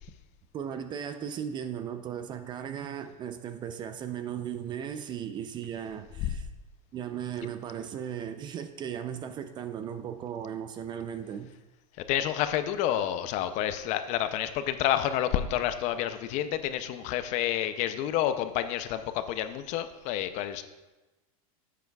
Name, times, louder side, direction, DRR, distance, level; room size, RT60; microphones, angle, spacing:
voice 1, 0.5-6.5 6.9-11.5, right 9 dB, 25° right, 10 dB, 0.4 m, -36 dB
voice 2, 12.1-20.6, left 11 dB, 40° left, 11 dB, 0.5 m, -29 dB
10.5 x 8.0 x 2.3 m, 1.1 s
supercardioid pair, 140°, 19 cm